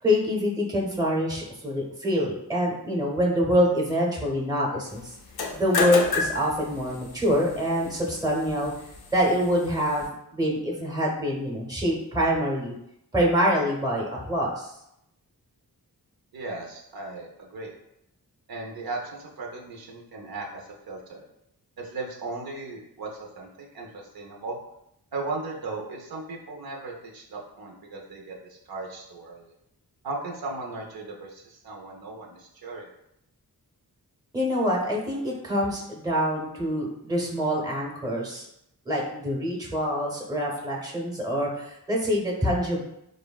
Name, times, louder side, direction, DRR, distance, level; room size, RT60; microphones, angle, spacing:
voice 1, 0.0-5.1 5.5-8.7 9.1-12.7 13.1-14.7 34.3-38.4 38.9-42.8, equal, 10° right, -2 dB, 0.7 m, -25 dB
sound 1, 5.2-10.1, left 4 dB, 70° left, 0.5 m, -32 dB
voice 2, 16.3-17.7 18.5-21.2 21.8-23.5 23.7-24.6 25.1-29.5 30.0-32.9, right 3 dB, 65° right, -1 dB, 0.6 m, -37 dB
3.1 x 2.1 x 2.2 m, 0.80 s
wide cardioid pair, 60°, 39 cm